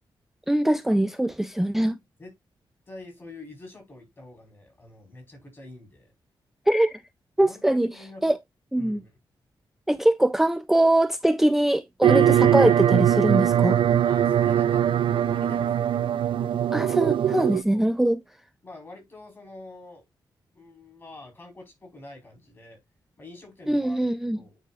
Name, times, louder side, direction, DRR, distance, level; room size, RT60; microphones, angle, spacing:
voice 1, 0.5-1.9 6.7-7.0 7.4-7.9 8.2-8.4 8.7-9.0 9.9-13.8 16.7-18.2 23.7-24.4, right 1 dB, 5° right, 0.4 m, -22 dB
voice 2, 2.9-6.1 7.4-8.3 8.7-9.1 14.0-15.9 17.7-17.9 18.6-20.0 20.5-22.8 23.2-24.0 24.3-24.6, left 2 dB, 25° left, 4.3 m, -46 dB
sound 1, 12.0-17.6, right 10 dB, 80° right, 0.5 m, -21 dB
9.3 x 4.8 x 2.4 m
wide cardioid pair, 160°, 9 cm